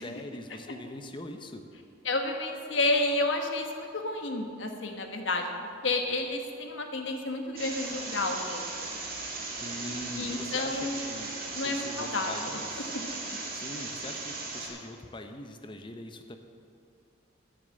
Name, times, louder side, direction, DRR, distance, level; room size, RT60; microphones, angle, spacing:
voice 1, 0.0-1.6 9.6-11.3 11.6-12.9 13.5-16.4, left 1 dB, 25° left, 6 dB, 0.8 m, -42 dB
voice 2, 2.0-5.5 5.8-8.9 10.2-11.0 11.5-12.4 12.8-13.2, left 2 dB, 65° left, 4 dB, 1.3 m, -30 dB
sound 1, 7.6-14.7, right 3 dB, 45° right, 2.1 m, -37 dB
12.0 x 6.7 x 7.7 m, 2.5 s
head